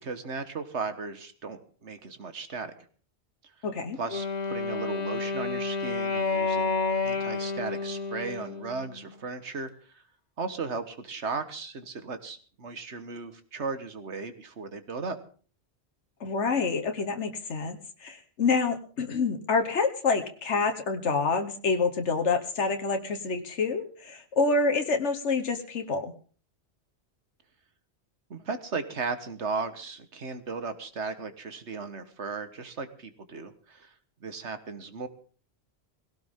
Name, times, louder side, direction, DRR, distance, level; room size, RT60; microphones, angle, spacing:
voice 1, 0.0-2.8 4.0-10.0 10.4-15.2 28.3-33.9 34.2-35.1, right 4 dB, 80° right, 10 dB, 1.7 m, -36 dB
voice 2, 3.6-4.0 16.2-26.1, left 4 dB, 85° left, 5 dB, 1.5 m, -27 dB
Wind instrument woodwind instrument, 4.1-9.1, left 4 dB, 40° left, 1.3 m, -30 dB
19.0 x 17.0 x 3.7 m, 0.41 s
omnidirectional pair, 1.2 m